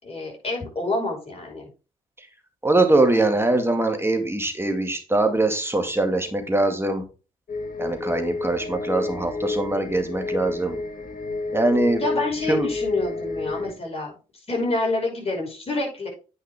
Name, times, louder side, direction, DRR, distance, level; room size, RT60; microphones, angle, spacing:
voice 1, 0.0-1.7 12.0-14.1 14.5-16.1, left 2 dB, 35° left, -1 dB, 5.4 m, -27 dB
voice 2, 2.6-7.0 7.8-10.8 11.5-12.0 12.5-12.7, right 2 dB, 15° right, 5 dB, 2.3 m, -22 dB
sound 1, 7.5-13.7, left 3 dB, 50° left, 2.0 m, -30 dB
9.1 x 5.8 x 3.6 m, 0.32 s
hypercardioid pair, 45°, 18 cm